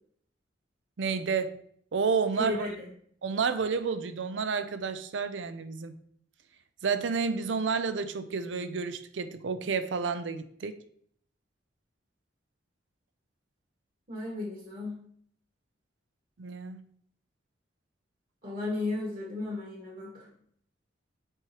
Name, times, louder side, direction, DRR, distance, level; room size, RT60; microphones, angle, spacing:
voice 1, 1.0-1.6 1.9-2.7 3.2-5.9 6.8-10.8 16.4-16.8, right 5 dB, 75° right, 11 dB, 0.5 m, -30 dB
voice 2, 2.4-2.9 14.1-15.0 18.4-20.3, left 2 dB, 50° right, -2 dB, 1.7 m, -34 dB
7.6 x 4.8 x 3.0 m, 0.63 s
head